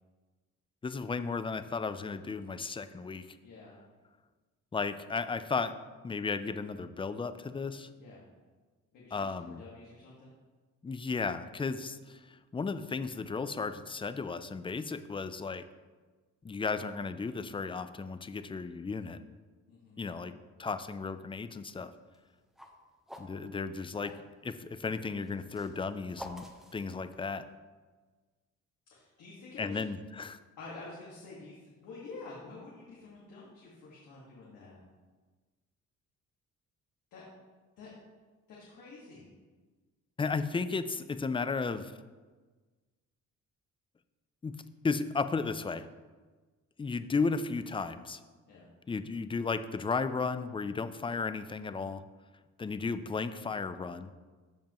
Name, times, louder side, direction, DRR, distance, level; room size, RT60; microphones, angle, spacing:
voice 1, 0.8-3.4 4.7-5.7 6.0-7.9 9.1-9.6 10.8-15.6 16.4-19.2 20.0-20.3 20.6-21.9 23.2-24.2 24.4-27.5 29.6-30.4 40.2-41.9 44.4-44.5 44.8-45.9 46.8-48.2 48.9-52.0 52.6-54.1, left 4 dB, 15° left, 11 dB, 0.4 m, -34 dB
voice 2, 3.4-3.8 8.0-8.2 8.9-10.3 19.7-20.0 28.9-29.8 30.6-34.8 37.1-37.2 37.8-37.9 38.5-39.3 48.5-48.7, left 3 dB, 90° left, -6 dB, 1.8 m, -49 dB
sound 1, 22.0-24.3 25.2-27.5, equal, ahead, 1.0 m, -49 dB
14.0 x 5.1 x 3.1 m, 1.3 s
cardioid pair, 90°, 30 cm